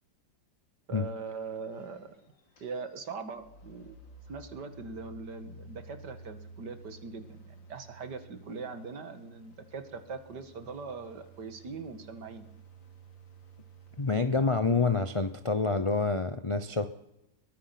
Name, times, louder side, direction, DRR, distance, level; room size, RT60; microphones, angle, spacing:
voice 1, 0.9-2.2 2.6-4.0 4.3-12.5, right 4 dB, 65° right, 10 dB, 2.4 m, -41 dB
sound 1, 1.3-15.3, right 2 dB, 85° left, 3.5 m, -53 dB
voice 2, 14.0-16.9, left 4 dB, 40° left, 10 dB, 0.4 m, -27 dB
22.0 x 20.0 x 6.0 m, 0.90 s
omnidirectional pair, 2.0 m